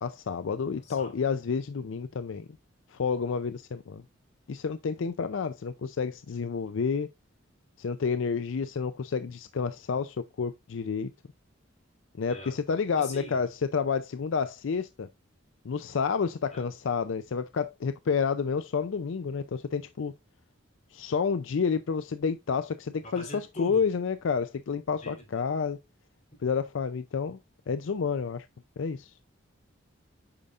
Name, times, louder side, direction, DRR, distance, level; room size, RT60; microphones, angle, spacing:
voice 1, 0.0-2.5 2.9-4.0 4.5-7.1 7.8-11.1 12.2-15.1 15.6-20.1 20.9-25.8 26.4-27.4 27.7-28.5 28.8-29.1, left 5 dB, 70° left, 0.4 m, -30 dB
voice 2, 0.8-1.2 12.3-12.6 13.0-13.4 16.5-16.7 23.0-23.8 25.0-25.5, left 2 dB, 35° left, 3.5 m, -41 dB
8.7 x 5.5 x 2.4 m
head